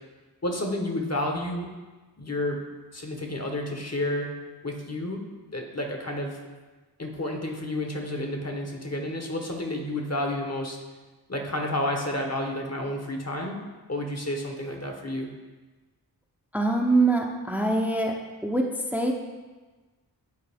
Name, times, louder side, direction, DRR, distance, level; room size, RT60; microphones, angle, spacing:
voice 1, 0.4-1.7 2.2-2.6 2.9-4.3 4.6-5.2 5.5-6.4 7.0-10.8 11.3-13.6 13.9-15.3, left 1 dB, 40° left, 2 dB, 1.0 m, -30 dB
voice 2, 16.5-18.1 18.4-18.6 18.9-19.1, right 2 dB, 5° right, 0 dB, 0.6 m, -23 dB
9.7 x 4.3 x 3.5 m, 1.3 s
wide cardioid pair, 45°, 39 cm